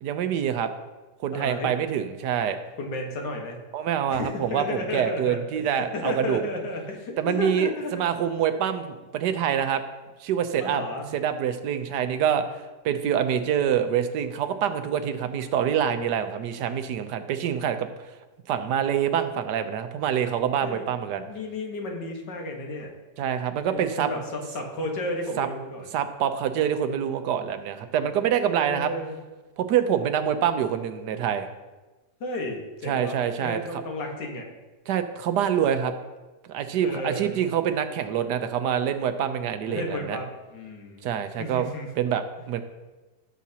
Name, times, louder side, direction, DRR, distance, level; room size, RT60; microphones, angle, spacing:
voice 1, 0.0-0.7 1.2-2.6 3.7-6.4 7.2-9.8 10.2-10.8 11.1-12.5 12.8-17.9 18.5-21.2 23.2-24.1 25.4-25.5 25.9-28.9 29.6-31.5 32.9-33.8 34.9-35.9 36.5-40.2 41.0-41.7 42.0-42.6, right 9 dB, 80° right, 8 dB, 1.3 m, -26 dB
voice 2, 1.3-1.7 2.8-3.6 4.1-8.0 10.6-11.1 20.6-22.9 23.7-25.9 28.6-29.2 32.2-34.5 36.8-37.4 39.7-41.1 41.4-41.9, left 2 dB, 85° left, 1 dB, 2.0 m, -33 dB
15.0 x 7.3 x 2.8 m, 1.2 s
omnidirectional pair, 1.8 m